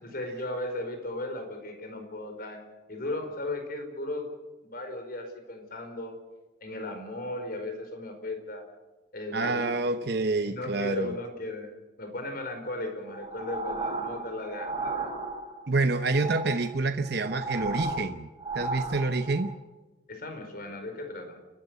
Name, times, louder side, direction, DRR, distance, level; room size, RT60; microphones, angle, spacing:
voice 1, 0.0-2.6 2.9-4.3 4.6-6.1 6.6-8.6 9.1-9.7 10.4-11.7 12.0-15.1 20.1-21.4, left 2 dB, 55° left, 5 dB, 4.9 m, -36 dB
voice 2, 9.3-11.1 15.7-18.3 18.5-19.5, right 3 dB, 60° right, 8 dB, 0.9 m, -27 dB
sound 1, 13.1-15.7 16.0-19.6, right 3 dB, 25° right, 3.1 m, -35 dB
30.0 x 12.5 x 8.1 m, 1.1 s
head